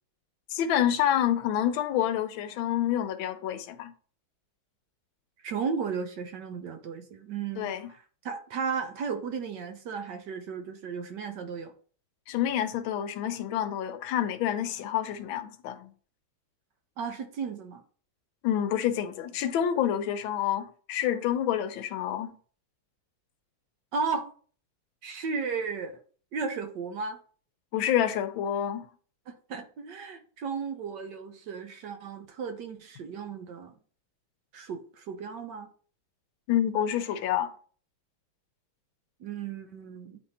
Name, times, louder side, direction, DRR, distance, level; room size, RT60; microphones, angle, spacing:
voice 1, 0.5-3.9 7.6-7.9 12.3-15.9 18.4-22.4 27.7-28.9 36.5-37.5, left 10 dB, 80° left, 1.4 m, -28 dB
voice 2, 5.4-7.7 8.2-11.7 17.0-17.8 23.9-24.3 25.0-25.9 26.3-27.2 29.3-33.7 34.5-35.7 39.2-40.2, right 5 dB, 70° right, 1.3 m, -34 dB
9.6 x 3.5 x 2.8 m
omnidirectional pair, 2.2 m